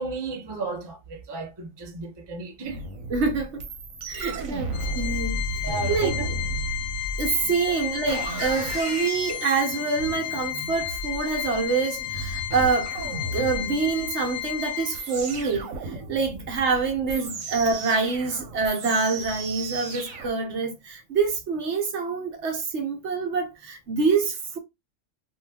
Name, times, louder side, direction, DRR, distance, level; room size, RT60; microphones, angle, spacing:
voice 1, 0.0-2.9 5.6-6.3 7.7-7.8 16.3-16.4, right 4 dB, 25° right, 0.6 m, -34 dB
sound 1, 2.6-20.3, right 2 dB, 85° right, 1.1 m, -34 dB
voice 2, 3.1-3.6 4.1-6.2 7.2-12.9 13.3-24.6, right 4 dB, 65° right, 1.1 m, -26 dB
Organ, 4.7-15.3, left 15 dB, 70° left, 0.9 m, -33 dB
2.7 x 2.3 x 3.3 m
omnidirectional pair, 1.3 m